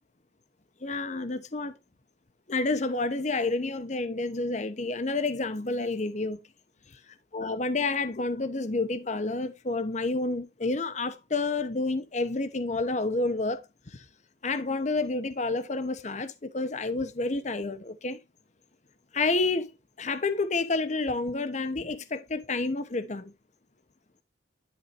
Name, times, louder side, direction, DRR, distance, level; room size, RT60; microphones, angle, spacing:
voice 1, 0.8-1.8 2.5-6.4 7.3-14.0 14.4-18.2 19.1-19.7 20.0-23.3, left 3 dB, 40° left, 0.9 m, -29 dB
11.0 x 6.4 x 2.6 m
head